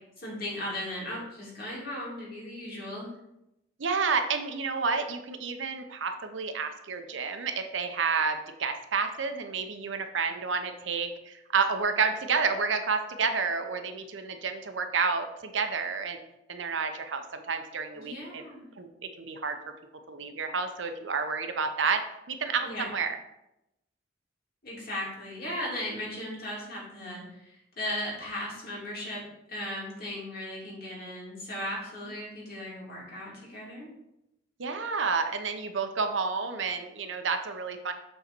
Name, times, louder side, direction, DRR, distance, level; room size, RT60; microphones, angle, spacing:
voice 1, 0.2-3.1 17.9-18.7 22.6-22.9 24.6-29.2 29.5-33.9, left 1 dB, 55° left, -5 dB, 2.7 m, -37 dB
voice 2, 3.8-16.2 16.5-18.4 18.8-19.6 20.1-23.2 34.6-37.9, right 5 dB, 70° right, 6 dB, 0.8 m, -30 dB
7.6 x 4.1 x 4.5 m, 0.87 s
head